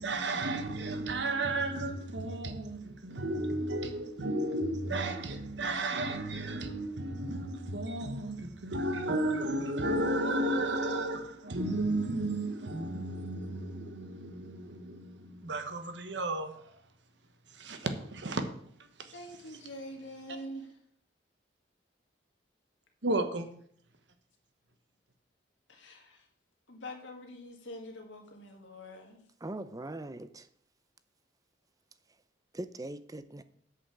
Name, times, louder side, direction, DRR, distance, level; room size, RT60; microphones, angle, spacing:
voice 1, 0.0-16.8 17.5-18.4 18.8-19.1 23.0-23.5, right 1 dB, 70° right, 1.2 m, -33 dB
voice 2, 19.1-20.7 25.7-26.3 26.7-29.2, left 1 dB, 85° left, 2.1 m, -45 dB
voice 3, 29.4-30.5 32.5-33.4, right 1 dB, 20° right, 0.6 m, -41 dB
8.2 x 5.6 x 7.5 m
head